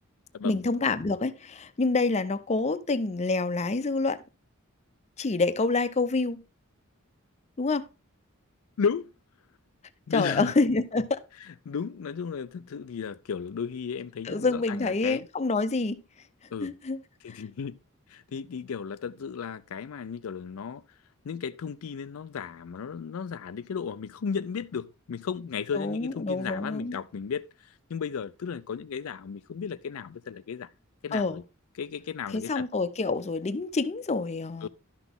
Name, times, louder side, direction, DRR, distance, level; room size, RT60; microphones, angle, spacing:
voice 1, 0.4-4.2 5.2-6.4 7.6-7.9 10.1-11.2 14.2-16.0 16.6-17.0 25.7-27.0 31.1-31.4 32.3-34.7, left 3 dB, 30° left, 0.5 m, -27 dB
voice 2, 8.8-9.1 10.1-10.5 11.4-15.3 16.5-16.7 17.2-17.8 18.1-20.8 21.2-30.7 31.0-31.4 31.8-32.7 34.6-34.7, left 6 dB, 80° left, 0.4 m, -34 dB
11.5 x 6.0 x 3.6 m
head